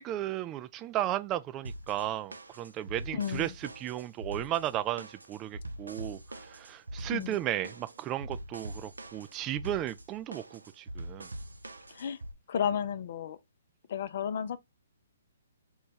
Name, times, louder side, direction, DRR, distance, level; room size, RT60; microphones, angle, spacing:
voice 1, 0.0-11.3, right 13 dB, 25° right, 0.3 m, -35 dB
sound 1, 1.6-12.3, right 1 dB, 90° right, 0.5 m, -43 dB
voice 2, 3.1-3.5 7.1-7.4 11.9-12.2 12.5-13.4 13.9-14.6, left 8 dB, 55° left, 0.5 m, -32 dB
4.0 x 2.3 x 3.9 m
hypercardioid pair, 130°, 0 cm